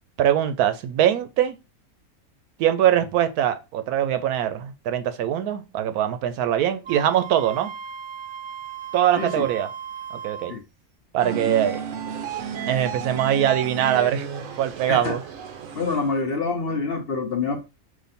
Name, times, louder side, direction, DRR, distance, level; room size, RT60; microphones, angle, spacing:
voice 1, 0.2-1.6 2.6-7.7 8.9-9.7 10.2-10.5 11.1-11.8 12.7-14.3 14.6-15.2, right 10 dB, 85° right, 1.1 m, -22 dB
Wind instrument woodwind instrument, 6.8-10.6, right 8 dB, 40° right, 0.8 m, -36 dB
voice 2, 9.2-9.5 10.5-10.6 14.9-15.2 15.7-17.6, left 4 dB, 55° left, 0.8 m, -26 dB
sound 1, 11.2-16.2, right 7 dB, 65° right, 1.0 m, -32 dB
5.0 x 2.5 x 4.1 m
omnidirectional pair, 1.6 m